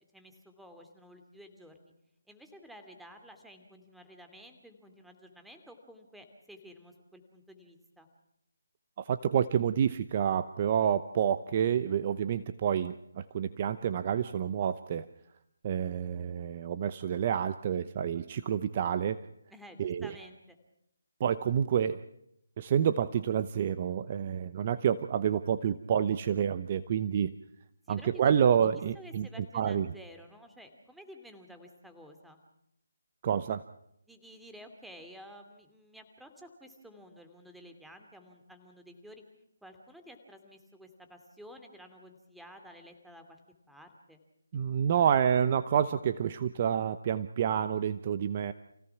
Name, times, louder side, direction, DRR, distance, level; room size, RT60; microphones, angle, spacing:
voice 1, 0.1-1.9 2.3-8.1 19.5-20.6 27.9-28.4 28.7-32.4 34.0-39.2 39.6-43.4 43.7-44.2, equal, ahead, 6 dB, 2.8 m, -52 dB
voice 2, 9.0-15.1 15.6-19.2 19.8-20.1 21.2-22.0 22.6-27.3 27.9-29.3 29.5-29.9 33.2-33.6 44.5-48.5, right 8 dB, 30° right, 11 dB, 0.8 m, -28 dB
29.0 x 17.0 x 5.9 m, 0.78 s
figure-of-eight pair, 160°, 0 cm